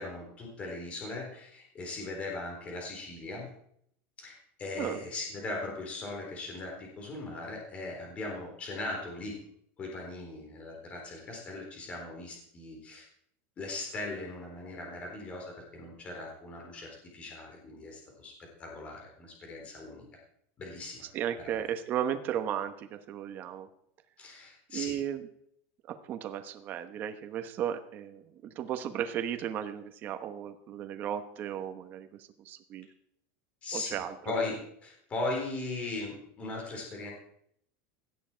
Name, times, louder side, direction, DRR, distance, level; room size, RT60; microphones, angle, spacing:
voice 1, 0.0-3.5 4.2-9.4 9.8-13.1 13.6-20.1 20.6-21.1 21.4-21.6 24.2-25.0 33.6-37.1, left 2 dB, 20° left, 0 dB, 4.0 m, -39 dB
voice 2, 21.1-23.7 24.7-25.2 25.9-32.1 32.4-32.9 33.7-34.1, right 10 dB, 30° right, 8 dB, 1.0 m, -35 dB
17.5 x 11.5 x 4.5 m, 0.69 s
supercardioid pair, 175°, 7 cm